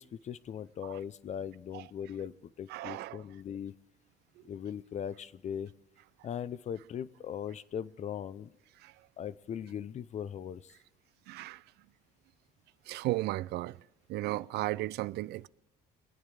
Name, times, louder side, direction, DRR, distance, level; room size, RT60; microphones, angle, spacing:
voice 1, 0.0-3.7 4.4-5.7 6.2-8.5 9.2-10.7, left 8 dB, 45° left, 0.5 m, -39 dB
voice 2, 2.7-3.2 4.4-4.5 8.8-8.9 11.3-11.6 12.9-13.8 14.1-15.5, right 18 dB, 75° right, 0.4 m, -35 dB
23.5 x 8.9 x 4.8 m
cardioid pair, 110°, 17 cm